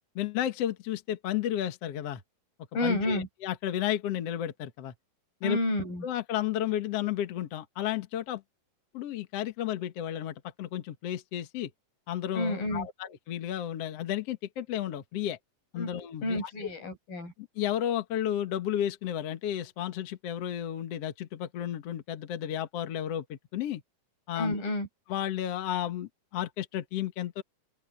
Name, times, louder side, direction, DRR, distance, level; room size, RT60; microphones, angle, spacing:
voice 1, 0.2-2.2 2.8-4.9 5.4-5.6 6.0-8.4 8.9-11.7 12.1-15.4 15.7-16.7 17.6-23.8 24.3-24.6 25.1-27.4, left 11 dB, 55° left, 2.0 m, -32 dB
voice 2, 2.7-3.3 5.4-6.1 12.3-12.9 15.8-15.9 16.2-17.3 24.4-24.9, left 1 dB, 80° left, 9.0 m, -30 dB
open air
omnidirectional pair, 4.0 m